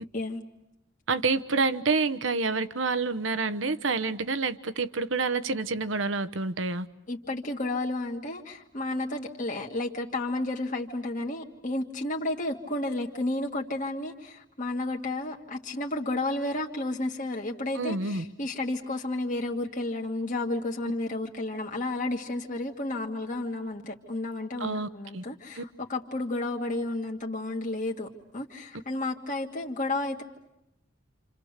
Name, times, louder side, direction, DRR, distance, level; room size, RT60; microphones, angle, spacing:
voice 1, 1.1-6.9 17.7-18.2 24.6-25.2 25.6-25.7, right 4 dB, 85° right, 1.1 m, -28 dB
voice 2, 7.1-28.1 28.3-30.2, left 2 dB, 45° left, 1.8 m, -32 dB
28.0 x 28.0 x 6.6 m
head